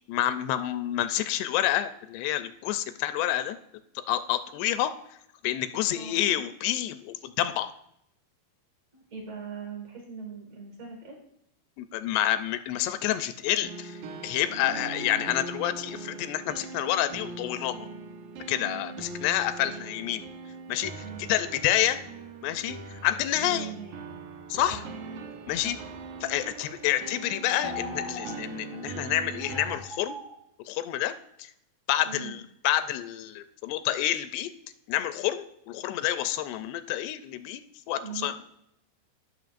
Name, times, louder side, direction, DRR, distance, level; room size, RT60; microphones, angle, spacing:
voice 1, 0.1-3.6 4.0-5.0 5.4-7.7 11.8-17.9 18.5-20.3 20.7-22.0 22.4-23.7 24.5-24.8 25.5-25.8 26.2-30.2 30.7-31.5 31.9-34.5 34.9-37.6 37.9-38.3, left 12 dB, 85° left, 11 dB, 2.5 m, -28 dB
voice 2, 5.9-6.4 8.9-11.2 14.4-14.8 18.6-19.0 21.0-21.3 23.4-24.1 24.7-24.9 25.6-25.8 32.0-32.4 38.0-38.3, right 6 dB, 45° right, -1 dB, 2.7 m, -41 dB
sound 1, 13.6-29.8, right 4 dB, 75° right, 1.8 m, -41 dB
sound 2, 27.5-28.3 28.7-28.8 29.4-30.3, left 3 dB, 20° right, 0.4 m, -39 dB
16.5 x 6.4 x 2.5 m, 0.76 s
omnidirectional pair, 4.7 m